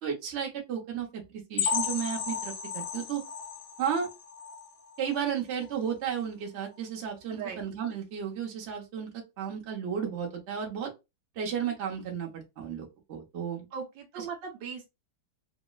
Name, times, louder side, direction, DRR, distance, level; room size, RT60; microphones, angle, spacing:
voice 1, 0.0-3.2 3.8-4.1 5.0-10.9 11.3-13.7 14.2-14.3, right 8 dB, 50° right, 0.9 m, -33 dB
sound 1, 1.6-5.2 5.6-5.8 6.1-6.2 6.7-6.8, left 7 dB, 70° left, 1.1 m, -34 dB
voice 2, 7.3-7.6 13.7-14.9, right 6 dB, 75° right, 1.4 m, -38 dB
3.0 x 2.8 x 2.3 m
omnidirectional pair, 2.2 m